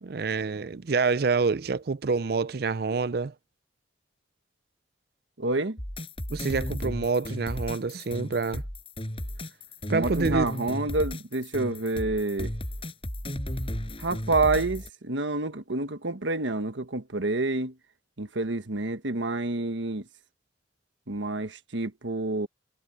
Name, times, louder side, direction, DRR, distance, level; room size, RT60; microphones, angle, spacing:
voice 1, 0.0-3.3 6.3-8.6 9.9-10.5, right 4 dB, 55° right, 0.5 m, -27 dB
voice 2, 5.4-5.8 9.9-12.5 14.0-17.7 18.2-20.0 21.1-22.5, right 2 dB, 90° right, 1.5 m, -28 dB
sound 1, 5.8-14.9, equal, 30° left, 6.4 m, -34 dB
head